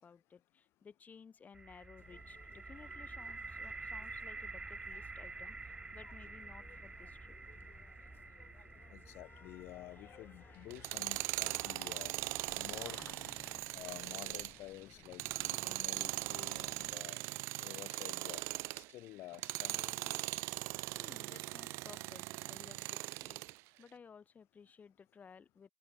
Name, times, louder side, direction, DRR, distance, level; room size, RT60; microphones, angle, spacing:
voice 1, 0.0-7.4 21.0-23.4 23.8-25.7, left 6 dB, 40° left, 5.8 m, -57 dB
sound 1, 1.5-13.4, right 3 dB, 20° right, 0.9 m, -49 dB
sound 2, 2.0-17.0, left 9 dB, 55° left, 4.2 m, -59 dB
voice 2, 8.9-12.3 12.5-13.0 13.7-17.2 17.6-18.4 18.8-20.4, left 17 dB, 80° left, 1.3 m, -50 dB
Tools, 10.7-18.9 19.3-23.6, right 23 dB, 90° right, 0.5 m, -40 dB
cardioid pair, 90°, 4 cm